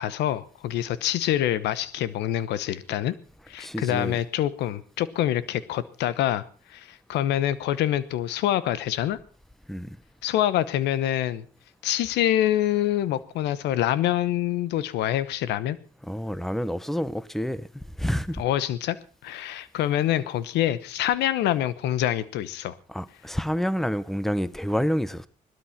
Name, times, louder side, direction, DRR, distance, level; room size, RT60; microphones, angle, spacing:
voice 1, 0.0-3.2 3.5-6.4 6.7-9.2 10.2-11.5 11.8-15.8 18.4-19.0 19.2-22.8, left 12 dB, 90° left, 1.0 m, -26 dB
voice 2, 3.6-4.2 9.7-10.0 16.0-18.4 22.9-25.3, equal, ahead, 1.1 m, -28 dB
18.5 x 12.5 x 5.8 m
supercardioid pair, 65°, 17 cm